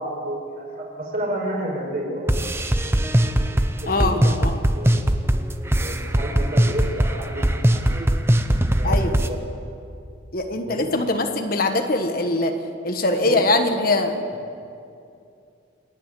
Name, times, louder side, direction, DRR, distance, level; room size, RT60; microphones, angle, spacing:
voice 1, 0.0-2.4 3.5-4.4 4.7-4.9 5.8-8.1 8.8-9.2 10.5-10.9 13.2-13.4, right 1 dB, 45° right, -1 dB, 5.2 m, -31 dB
sound 1, 2.3-9.3, right 1 dB, 15° right, 0.7 m, -20 dB
voice 2, 3.9-4.6 8.8-9.2 10.3-12.6 12.8-14.2, left 2 dB, 45° left, 5 dB, 1.4 m, -22 dB
29.0 x 9.8 x 9.4 m, 2.5 s
head